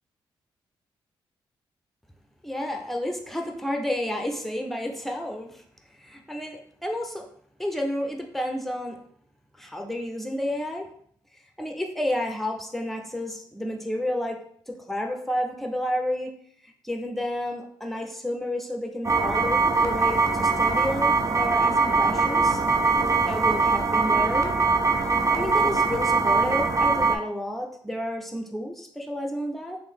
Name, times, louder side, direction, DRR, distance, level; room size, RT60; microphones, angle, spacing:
voice 1, 2.4-5.6 6.0-7.3 7.6-9.0 9.6-10.9 11.6-14.4 14.7-16.3 16.6-22.6 23.2-24.6 25.3-29.8, left 1 dB, ahead, 2 dB, 0.7 m, -31 dB
sound 1, 19.0-27.2, right 4 dB, 35° right, 0.5 m, -22 dB
3.2 x 2.7 x 3.7 m, 0.63 s
cardioid pair, 65°, 9 cm